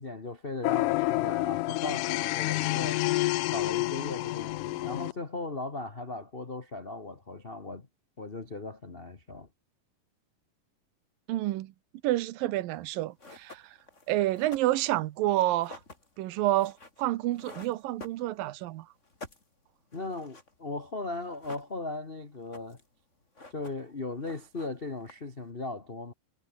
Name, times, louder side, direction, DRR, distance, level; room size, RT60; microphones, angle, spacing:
voice 1, 0.0-3.0 3.5-7.9 8.2-9.5 19.9-22.8 23.5-26.1, left 2 dB, 55° left, 0.6 m, -38 dB
sound 1, 0.6-5.1, left 20 dB, 80° left, 1.9 m, -29 dB
voice 2, 11.3-11.7 12.0-13.8 14.1-15.8 16.2-18.9, right 16 dB, 80° right, 2.7 m, -29 dB
sound 2, 12.8-12.9 13.2-18.7 19.0-20.6 20.8-20.9 21.1-22.1 22.3-22.9 23.2-24.0 24.2-25.4, left 2 dB, 20° left, 4.3 m, -50 dB
omnidirectional pair, 4.0 m